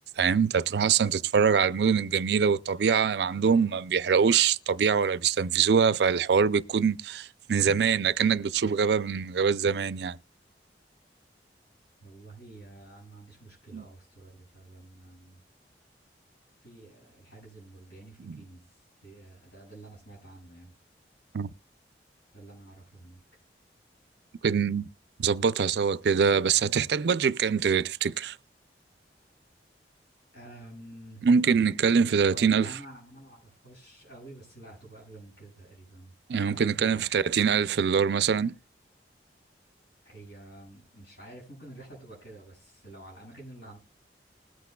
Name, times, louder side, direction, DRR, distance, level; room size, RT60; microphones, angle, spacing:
voice 1, 0.2-10.2 13.7-13.8 18.3-18.4 21.3-21.5 24.4-24.9 25.2-28.4 31.2-32.7 36.3-38.6, right 6 dB, 70° right, 0.4 m, -24 dB
voice 2, 12.0-15.4 16.6-20.7 22.3-23.2 30.3-31.3 32.3-37.3 40.0-43.8, right 1 dB, 85° left, 7.3 m, -49 dB
20.5 x 8.3 x 2.3 m
head